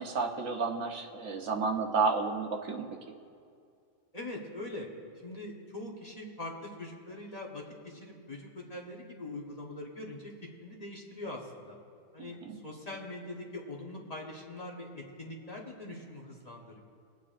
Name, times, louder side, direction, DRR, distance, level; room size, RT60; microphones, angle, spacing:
voice 1, 0.0-2.9 12.2-12.6, right 4 dB, 75° right, 2 dB, 1.3 m, -31 dB
voice 2, 4.1-4.9 5.2-10.3 10.6-11.8 12.1-12.4 12.6-16.8, left 2 dB, 30° left, -2 dB, 1.2 m, -42 dB
22.5 x 9.0 x 2.5 m, 2.3 s
omnidirectional pair, 1.4 m